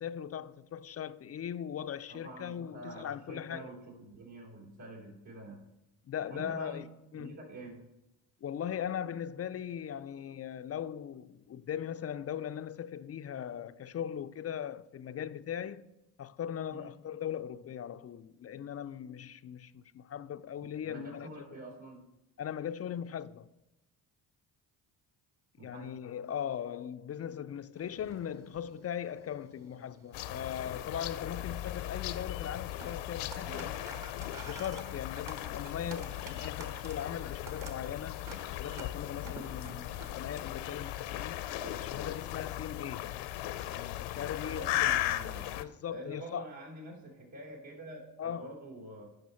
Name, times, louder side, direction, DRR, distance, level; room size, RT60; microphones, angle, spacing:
voice 1, 0.0-3.7 6.1-6.9 7.1-7.4 8.4-15.9 16.2-21.3 22.4-23.5 25.6-33.7 34.5-38.3 38.6-41.5 41.8-43.1 43.7-44.9 45.6-46.5 48.2-48.4, left 9 dB, 35° left, 0.4 m, -39 dB
voice 2, 2.1-5.6 6.3-6.8 7.1-7.9 16.7-16.9 20.6-22.0 25.6-25.9 33.4-33.9 44.4-45.5 45.9-49.1, right 1 dB, 65° right, 3.6 m, -47 dB
sound 1, 27.8-42.2, right 3 dB, 40° right, 1.4 m, -52 dB
sound 2, 30.1-45.6, left 14 dB, 70° left, 0.7 m, -37 dB
10.5 x 5.5 x 4.3 m
supercardioid pair, 55°, 49 cm